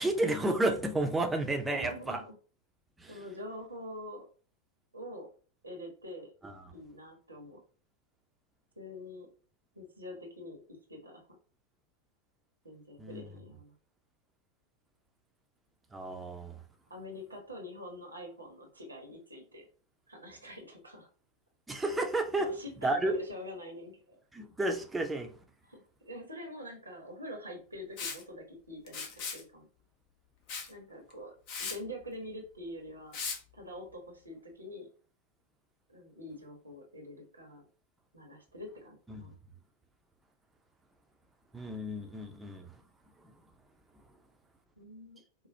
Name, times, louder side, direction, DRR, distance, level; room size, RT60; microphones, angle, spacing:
voice 1, 0.0-2.2 3.0-3.1 6.4-6.5 13.0-13.2 15.9-16.6 21.7-22.5 22.8-23.1 24.3-25.3 39.1-39.2 41.5-42.8, right 2 dB, 10° right, 0.6 m, -31 dB
voice 2, 1.7-2.3 3.1-4.3 4.9-5.3 5.6-6.3 6.7-7.6 8.8-9.3 9.7-11.3 12.6-13.7 16.9-19.7 20.1-21.1 22.4-24.2 25.6-29.0 29.3-29.7 30.7-31.3 31.6-33.2 33.5-34.9 35.9-37.6 38.1-39.4 44.8-45.2, left 1 dB, 80° right, 1.0 m, -45 dB
Liquid, 28.0-28.2 28.9-29.4 30.5-30.7 31.1-31.2 31.5-31.8 33.1-33.4, left 5 dB, 45° left, 0.7 m, -37 dB
4.7 x 2.0 x 2.7 m
figure-of-eight pair, 90°, 0 cm